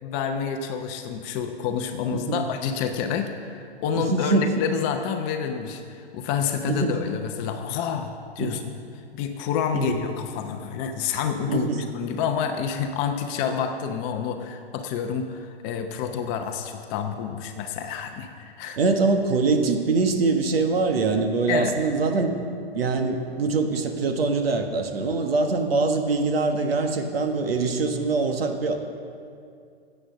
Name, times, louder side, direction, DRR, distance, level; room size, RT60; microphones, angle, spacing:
voice 1, 0.0-8.6 9.1-18.8 21.5-21.7, left 7 dB, 25° left, 5 dB, 0.7 m, -28 dB
voice 2, 2.1-2.5 3.9-4.6 6.7-6.9 8.4-8.6 9.7-10.0 11.5-11.8 18.8-28.8, right 3 dB, 65° right, 5 dB, 1.5 m, -24 dB
9.9 x 8.0 x 7.2 m, 2.3 s
hypercardioid pair, 140°, 32 cm